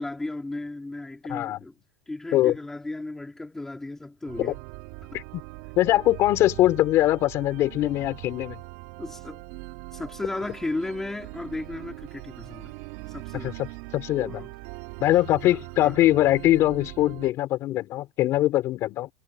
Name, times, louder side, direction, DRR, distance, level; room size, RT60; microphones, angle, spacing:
voice 1, 0.0-1.7 2.1-4.6 9.0-9.4 9.9-12.7 13.1-13.7 14.2-14.5 15.4-16.0, left 2 dB, 5° left, 3.6 m, -35 dB
sound 1, 4.3-17.3, right 23 dB, 45° right, 3.1 m, -41 dB
voice 2, 5.8-8.6 13.3-14.5 15.0-19.1, left 15 dB, 30° left, 4.4 m, -22 dB
supercardioid pair, 175°, 10 cm